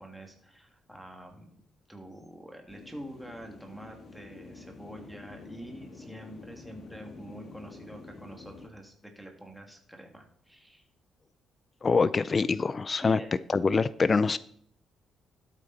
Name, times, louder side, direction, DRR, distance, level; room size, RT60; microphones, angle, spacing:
voice 1, 0.0-1.5 1.9-10.9 13.0-13.3, right 1 dB, ahead, 2 dB, 2.3 m, -46 dB
sound 1, 2.7-8.7, left 3 dB, 55° left, 1.9 m, -48 dB
voice 2, 11.8-13.2 13.5-14.4, left 4 dB, 35° left, 16 dB, 0.4 m, -24 dB
12.5 x 8.4 x 4.2 m, 0.64 s
cardioid pair, 90°, 0 cm